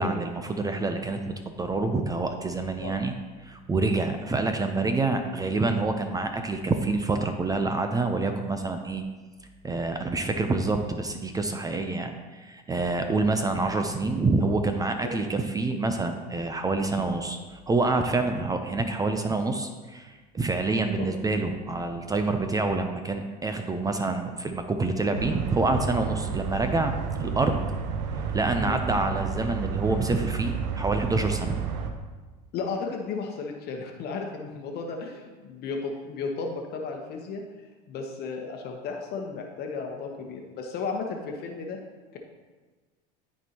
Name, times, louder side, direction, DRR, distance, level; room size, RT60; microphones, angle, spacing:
voice 1, 0.0-3.1 3.4-9.1 9.6-27.6 28.3-31.6, right 3 dB, 15° right, 6 dB, 0.5 m, -27 dB
sound 1, 25.1-31.9, right 6 dB, 85° right, 0.8 m, -31 dB
voice 2, 32.5-37.4 37.9-41.8 42.1-42.2, left 4 dB, 50° left, 2 dB, 1.0 m, -34 dB
12.5 x 4.5 x 2.9 m, 1.3 s
supercardioid pair, 100°, 21 cm